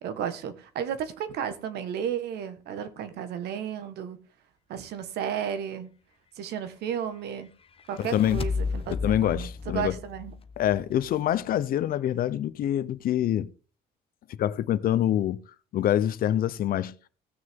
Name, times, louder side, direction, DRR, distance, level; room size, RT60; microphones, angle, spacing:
voice 1, 0.0-4.2 4.7-5.9 6.4-7.5 7.9-9.0 9.2-10.3, right 8 dB, 75° right, 1.5 m, -33 dB
sound 1, 7.8-11.1, left 4 dB, 35° left, 1.0 m, -33 dB
voice 2, 8.0-8.4 8.9-9.9 10.6-13.5 14.3-15.4 15.7-16.9, left 11 dB, 60° left, 0.7 m, -25 dB
17.0 x 6.5 x 3.7 m
cardioid pair, 110°, 17 cm